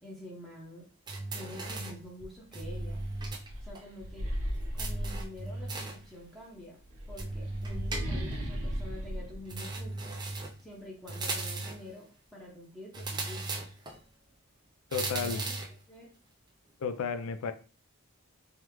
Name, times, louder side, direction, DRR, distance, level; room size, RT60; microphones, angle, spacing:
voice 1, 0.0-0.9 1.3-3.0 3.6-4.3 4.7-6.8 7.1-10.2 10.6-13.7 15.1-15.6 15.9-16.1, left 1 dB, ahead, -4 dB, 0.7 m, -47 dB
sound 1, 1.1-2.1 2.5-3.5 3.7-3.8 4.8-6.1 7.2-8.4 9.5-10.6 11.1-11.9 12.9-14.0 14.9-15.8, right 3 dB, 20° right, 0.3 m, -37 dB
sound 2, 2.2-5.8 6.8-10.4, equal, 65° right, 0.6 m, -37 dB
voice 2, 14.9-15.4 16.8-17.5, left 6 dB, 65° left, 10 dB, 0.4 m, -32 dB
3.5 x 2.0 x 2.9 m, 0.37 s
head